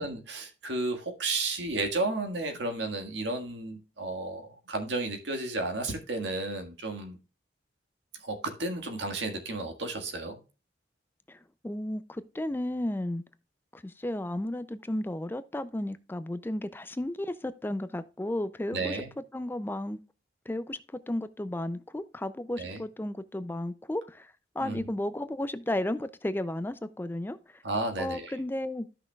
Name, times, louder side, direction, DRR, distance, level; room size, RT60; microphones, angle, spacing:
voice 1, 0.0-4.4 4.7-7.2 8.2-10.4 18.7-19.1 22.6-22.8 24.6-24.9 27.6-28.3, right 2 dB, 90° right, 1.7 m, -32 dB
voice 2, 11.3-13.2 13.7-19.0 19.3-20.0 20.5-27.6 28.0-28.9, left 1 dB, 10° left, 0.4 m, -34 dB
13.5 x 5.9 x 2.3 m
head